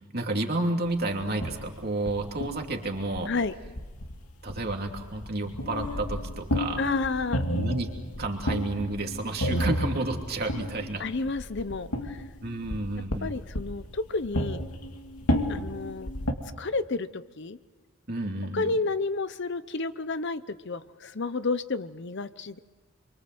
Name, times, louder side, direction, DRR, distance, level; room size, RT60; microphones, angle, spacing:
voice 1, 0.1-3.3 4.4-6.8 7.5-7.9 8.2-11.0 12.4-13.4 18.1-18.7, right 2 dB, 45° right, 2 dB, 2.8 m, -31 dB
sound 1, 1.1-16.3, equal, 85° left, 2.6 m, -32 dB
voice 2, 6.8-7.4 11.0-12.2 13.2-14.6 15.5-16.1 16.6-17.6 18.5-22.6, left 3 dB, 55° left, 13 dB, 0.8 m, -31 dB
27.5 x 24.0 x 7.8 m, 1.3 s
head